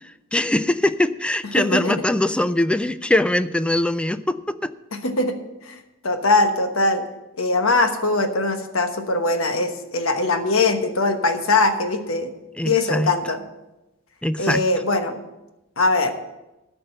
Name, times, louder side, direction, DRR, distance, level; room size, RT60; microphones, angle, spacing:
voice 1, 0.3-4.7 12.6-13.1 14.2-14.6, left 1 dB, 5° left, 13 dB, 0.4 m, -22 dB
voice 2, 1.5-2.0 5.0-5.4 5.6-7.0 7.4-12.3 12.6-13.4 14.4-15.2 15.8-16.1, left 2 dB, 70° left, 6 dB, 1.2 m, -21 dB
13.0 x 5.2 x 7.9 m, 1.0 s
head